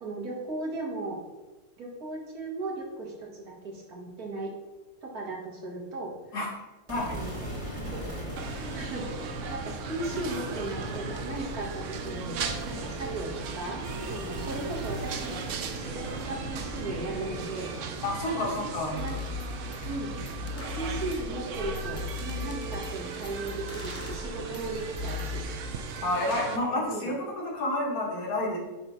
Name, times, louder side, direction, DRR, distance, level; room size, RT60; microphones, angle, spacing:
voice 1, 0.0-1.2 1.8-4.5 5.0-6.1 7.1-7.4 7.7-12.4 12.7-13.8 14.1-15.4 15.7-17.7 18.3-18.4 19.0-19.2 19.8-20.1 20.6-25.5 26.7-27.1, right 2 dB, 80° right, -2 dB, 2.2 m, -37 dB
sound 1, 6.9-21.2, equal, 20° right, 1.8 m, -39 dB
sound 2, 8.4-26.6, right 6 dB, 65° right, 0.9 m, -38 dB
voice 2, 18.0-19.0 26.0-28.6, left 1 dB, 75° left, -3 dB, 2.1 m, -29 dB
sound 3, 18.5-18.6 19.0-25.4, left 4 dB, 15° left, 0.7 m, -37 dB
8.9 x 3.2 x 5.7 m, 1.1 s
omnidirectional pair, 1.6 m